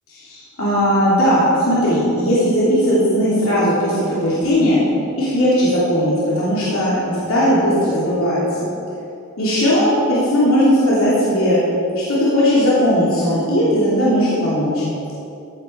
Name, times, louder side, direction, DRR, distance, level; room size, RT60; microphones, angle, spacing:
voice 1, 0.1-4.8 5.1-8.7 9.4-11.6 11.9-14.8, equal, 70° left, -9 dB, 3.1 m, -17 dB
15.5 x 9.0 x 4.6 m, 2.7 s
head